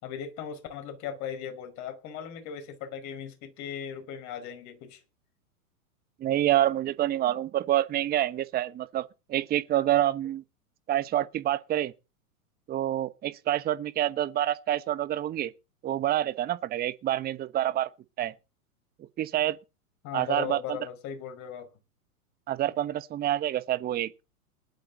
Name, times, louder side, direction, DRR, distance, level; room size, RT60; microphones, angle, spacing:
voice 1, 0.0-5.0 20.0-21.7, left 8 dB, 40° left, 5.5 m, -38 dB
voice 2, 6.2-10.4 10.9-11.9 12.7-15.5 15.8-17.9 18.2-18.3 19.2-19.6 20.1-20.6 22.5-24.1, right 12 dB, 20° right, 1.0 m, -27 dB
19.5 x 11.5 x 4.0 m
hypercardioid pair, 110°, 43 cm